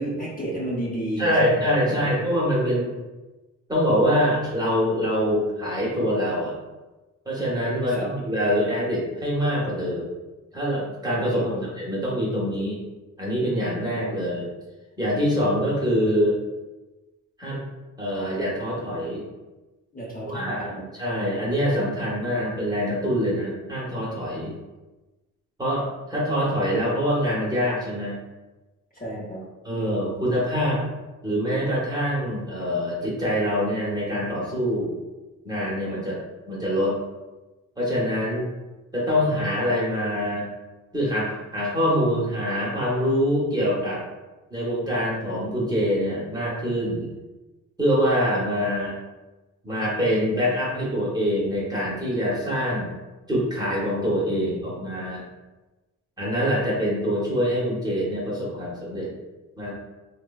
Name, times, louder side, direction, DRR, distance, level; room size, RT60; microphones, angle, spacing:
voice 1, 0.0-2.2 7.9-8.1 11.3-11.7 19.9-20.8 28.9-29.4, right 1 dB, 30° left, -5 dB, 0.8 m, -32 dB
voice 2, 1.2-2.9 3.7-6.5 7.3-10.1 10.5-12.8 13.2-14.5 15.0-16.4 17.4-17.6 18.0-19.2 20.2-24.5 25.6-28.2 29.6-30.8 31.2-35.0 35.4-36.2 36.5-36.9 37.8-38.5 38.9-40.5 40.9-44.0 44.5-47.1 47.8-48.9 49.6-52.9 53.3-55.2 56.2-59.1 59.6-59.7, equal, 15° right, -7 dB, 0.8 m, -24 dB
3.1 x 2.0 x 2.2 m, 1.1 s
cardioid pair, 90°, 30 cm